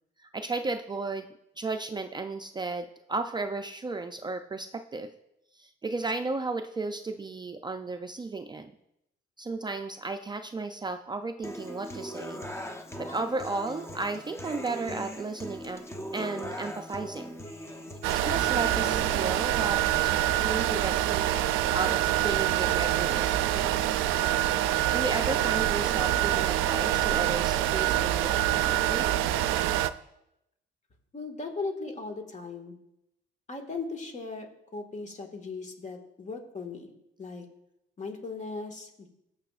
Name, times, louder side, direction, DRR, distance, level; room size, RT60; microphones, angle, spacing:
voice 1, 0.2-1.3 1.6-5.1 5.5-8.7 9.4-12.4 13.0-15.8 16.1-17.3 18.1-21.4 21.7-24.1 24.9-29.1, right 3 dB, 20° right, 6 dB, 0.4 m, -34 dB
Human voice / Acoustic guitar, 11.4-19.4, equal, 15° left, 1.0 m, -40 dB
sound 1, 18.0-29.9, right 13 dB, 90° right, 0.4 m, -26 dB
voice 2, 31.1-32.8 33.5-34.5 34.7-36.9 37.2-37.5 38.0-39.1, left 3 dB, 35° left, 4 dB, 1.7 m, -37 dB
19.5 x 6.8 x 2.4 m, 0.84 s
cardioid pair, 90°, 20 cm